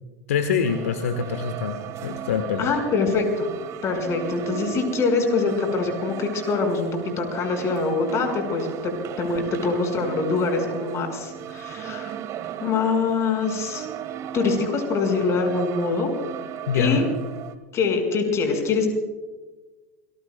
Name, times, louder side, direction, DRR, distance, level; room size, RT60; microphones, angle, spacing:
voice 1, 0.3-2.8 16.7-17.1, left 6 dB, 70° left, 7 dB, 1.3 m, -25 dB
sound 1, 0.7-17.5, right 11 dB, 40° right, 1.4 m, -36 dB
voice 2, 2.6-3.5 3.8-12.1 12.6-13.8 14.3-16.1 16.7-17.0 17.7-18.9, left 4 dB, 35° left, 4 dB, 5.0 m, -24 dB
28.5 x 19.5 x 2.2 m, 1.2 s
figure-of-eight pair, 80°, 8 cm